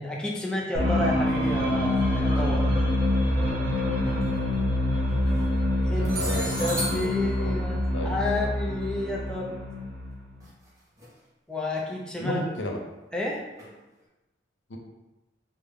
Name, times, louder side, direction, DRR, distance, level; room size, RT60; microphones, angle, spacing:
voice 1, 0.0-2.6 5.8-6.2 6.6-9.6 11.5-12.4 13.1-13.4, left 1 dB, 5° left, -3 dB, 0.4 m, -30 dB
sound 1, 0.7-10.3, left 1 dB, 60° right, 1.1 m, -26 dB
sound 2, 2.0-2.1 4.1-4.3 5.1-5.5 6.0-9.0 10.4-10.7 11.0-11.1 11.8-11.9 13.6-13.7, right 1 dB, 15° right, 0.9 m, -36 dB
voice 2, 6.0-7.1 7.4-7.5 7.9-8.1 12.2-12.8 14.7-14.8, left 1 dB, 80° left, 1 dB, 0.6 m, -33 dB
3.4 x 2.1 x 3.5 m, 1.1 s
head